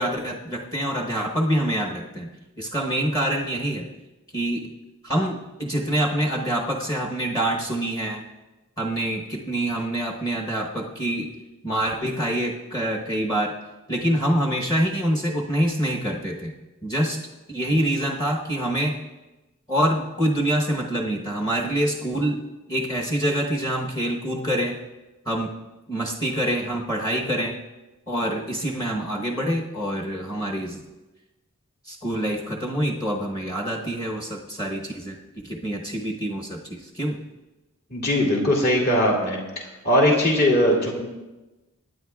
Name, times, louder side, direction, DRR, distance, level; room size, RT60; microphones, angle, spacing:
voice 1, 0.0-2.3 2.6-3.8 4.3-4.6 5.0-8.2 8.8-11.3 11.6-13.5 13.9-16.5 16.8-17.2 17.5-18.9 19.7-22.4 22.7-24.8 25.2-25.5 25.9-27.6 28.1-30.8 31.9-35.2 35.4-37.2, right 1 dB, 15° left, -2 dB, 1.0 m, -25 dB
voice 2, 37.9-39.4 39.8-41.0, left 1 dB, 45° left, -1 dB, 2.5 m, -20 dB
24.5 x 9.8 x 2.4 m, 1.1 s
head